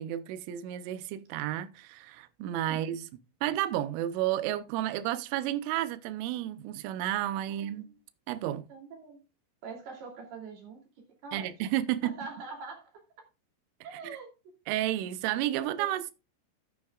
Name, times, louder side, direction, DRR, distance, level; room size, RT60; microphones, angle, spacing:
voice 1, 0.0-3.1 3.4-7.9 8.3-8.7 11.3-12.1 13.9-14.2 14.7-16.1, right 13 dB, 85° right, 3.2 m, -31 dB
voice 2, 7.5-8.0 8.7-9.2 9.6-10.8 11.2-11.5 12.0-12.9 13.8-14.3 15.4-15.9, right 4 dB, 55° right, 4.6 m, -43 dB
13.0 x 9.2 x 2.4 m
omnidirectional pair, 5.6 m